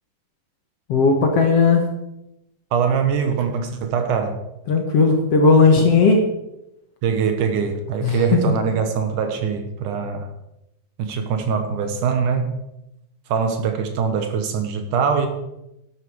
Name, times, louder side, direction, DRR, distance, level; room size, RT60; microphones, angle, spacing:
voice 1, 0.9-1.8 4.7-6.2 8.0-8.2, left 4 dB, 55° left, 3 dB, 2.0 m, -16 dB
voice 2, 2.7-4.4 7.0-10.3 11.0-12.6 13.3-15.3, right 6 dB, 70° right, 7 dB, 2.6 m, -22 dB
11.5 x 11.5 x 4.9 m, 0.88 s
omnidirectional pair, 3.9 m